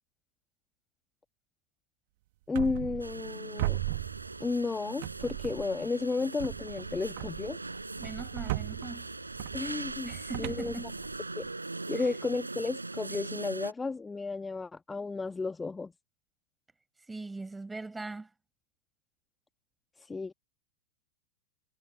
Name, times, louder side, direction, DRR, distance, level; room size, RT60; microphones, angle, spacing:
voice 1, 2.5-3.8 4.4-7.6 9.5-10.1 10.4-10.7 11.4-11.5 11.9-15.9 20.0-20.3, left 4 dB, 10° left, 1.4 m, -33 dB
sound 1, 2.5-3.3 3.6-4.7 5.0-5.9 6.4-11.5, right 19 dB, 50° right, 1.4 m, -38 dB
sound 2, 3.0-13.7, right 2 dB, 80° right, 5.6 m, -41 dB
voice 2, 8.0-9.1 10.0-11.0 11.9-12.1 17.1-18.3, right 3 dB, 10° right, 7.2 m, -40 dB
figure-of-eight pair, 90°, 0 cm